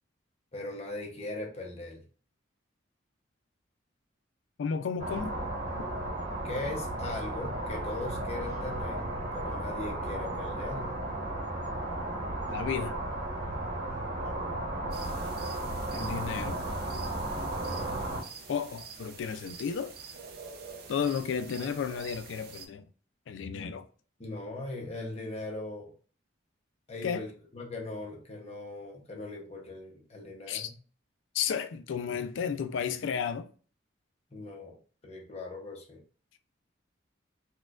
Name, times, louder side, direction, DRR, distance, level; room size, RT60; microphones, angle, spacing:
voice 1, 0.5-2.0 6.4-11.0 14.0-14.4 17.6-17.9 24.2-25.9 26.9-30.8 34.3-34.8 35.0-36.0, left 2 dB, 35° left, 0.7 m, -40 dB
voice 2, 4.6-5.3 12.5-13.0 15.9-16.6 18.5-19.9 20.9-22.8 23.3-23.9 27.0-27.3 30.5-30.7 31.3-33.5, left 7 dB, 75° left, 0.3 m, -33 dB
sound 1, 5.0-18.2, right 1 dB, 35° right, 1.0 m, -34 dB
sound 2, 14.9-22.7, right 5 dB, 50° right, 0.5 m, -47 dB
4.2 x 2.2 x 2.4 m
head